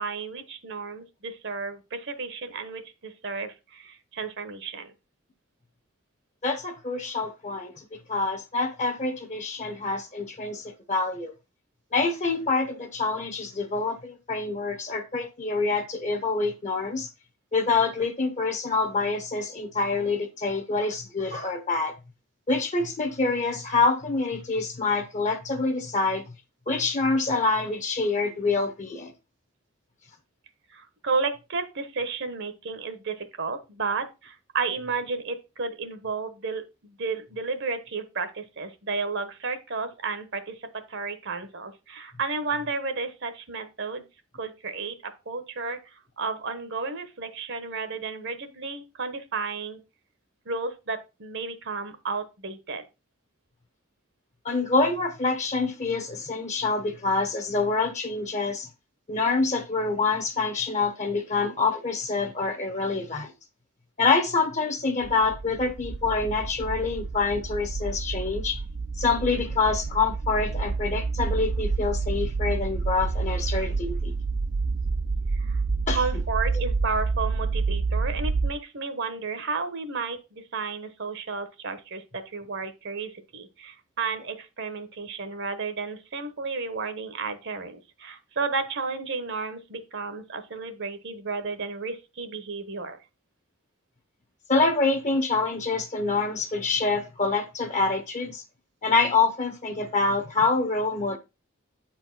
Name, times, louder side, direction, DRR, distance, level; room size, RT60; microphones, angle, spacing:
voice 1, 0.0-4.9 30.7-44.0 44.3-49.8 50.4-52.8 75.3-75.6 75.9-93.0, right 4 dB, 60° right, 1.1 m, -32 dB
voice 2, 6.4-7.7 8.1-11.3 11.9-17.1 17.5-21.9 22.5-26.2 26.7-29.1 54.4-58.7 59.1-63.3 64.0-68.6 69.0-74.1 75.9-76.0 94.5-98.4 98.8-101.2, left 3 dB, 35° left, 0.9 m, -26 dB
sound 1, 65.0-78.5, right 4 dB, 30° right, 0.4 m, -28 dB
8.7 x 4.5 x 3.9 m
head